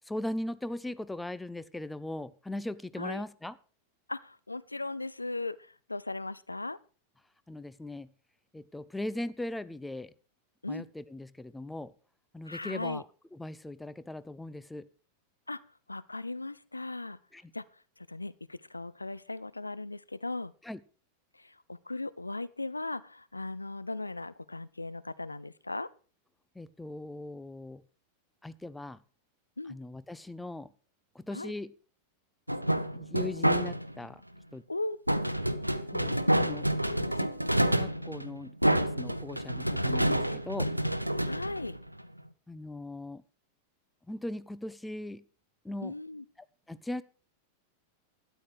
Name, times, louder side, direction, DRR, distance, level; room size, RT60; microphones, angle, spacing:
voice 1, 0.1-3.5 7.5-8.1 8.5-10.1 10.7-11.9 12.3-13.0 13.3-14.9 17.3-17.5 20.6-20.8 26.6-27.8 28.4-29.0 29.7-30.7 31.1-31.7 32.9-34.2 34.5-34.6 35.9-36.7 37.1-37.3 37.6-40.7 42.5-43.2 44.1-45.2 45.6-45.9 46.7-47.0, left 1 dB, 5° left, 15 dB, 0.6 m, -39 dB
voice 2, 4.1-6.8 10.6-10.9 12.5-13.0 15.5-15.6 15.9-17.2 17.5-17.6 18.0-20.5 21.4-25.9 29.6-29.8 31.3-31.5 34.7-35.0 36.9-37.2 41.2-41.8 45.8-46.2, left 2 dB, 85° left, 16 dB, 0.5 m, -37 dB
sound 1, 32.5-34.1 35.1-42.2, right 1 dB, 90° right, 0.7 m, -28 dB
12.5 x 10.0 x 4.8 m, 0.38 s
figure-of-eight pair, 90°, 0 cm